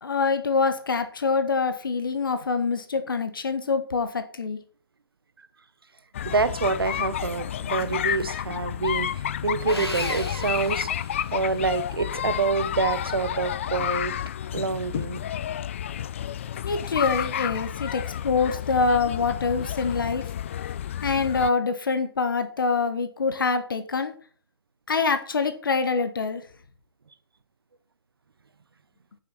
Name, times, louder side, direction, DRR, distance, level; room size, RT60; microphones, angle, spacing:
voice 1, 0.0-4.6 16.6-20.2 21.0-24.1 24.9-26.4, left 4 dB, 60° left, 1.5 m, -25 dB
sound 1, 6.1-21.5, left 10 dB, 30° left, 0.4 m, -30 dB
voice 2, 6.2-10.9 11.3-14.1 14.5-15.2, right 4 dB, 65° right, 1.2 m, -27 dB
Sawing, 9.7-11.6, left 2 dB, 75° left, 3.0 m, -34 dB
9.2 x 7.0 x 6.0 m
figure-of-eight pair, 135°, 13 cm